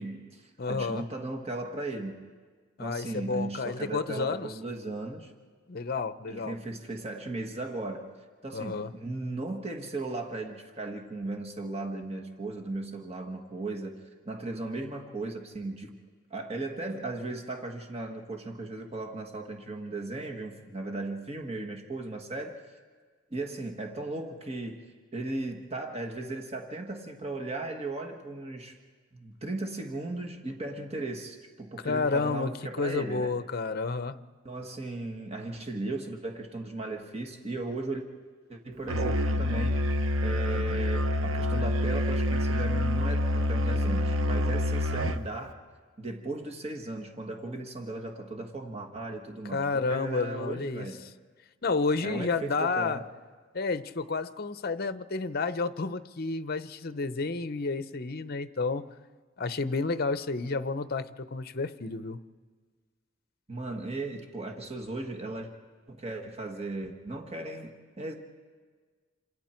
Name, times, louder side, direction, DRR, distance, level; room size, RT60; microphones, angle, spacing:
voice 1, 0.0-2.2 2.8-5.3 6.3-8.1 8.4-15.9 16.3-22.6 23.3-24.8 25.1-28.8 29.1-33.3 34.4-38.0 38.5-40.0 40.2-45.6 46.0-51.1 52.0-53.0 63.5-65.5 65.9-68.1, right 2 dB, 30° right, 2 dB, 1.6 m, -36 dB
voice 2, 0.6-1.0 2.8-4.5 5.7-6.6 8.5-8.9 31.8-34.2 49.5-50.9 51.6-53.0 53.5-58.9 59.4-62.2, left 4 dB, 50° left, 12 dB, 0.8 m, -30 dB
Musical instrument, 38.9-45.3, left 1 dB, 80° right, 0.9 m, -27 dB
28.0 x 27.0 x 4.5 m, 1.5 s
head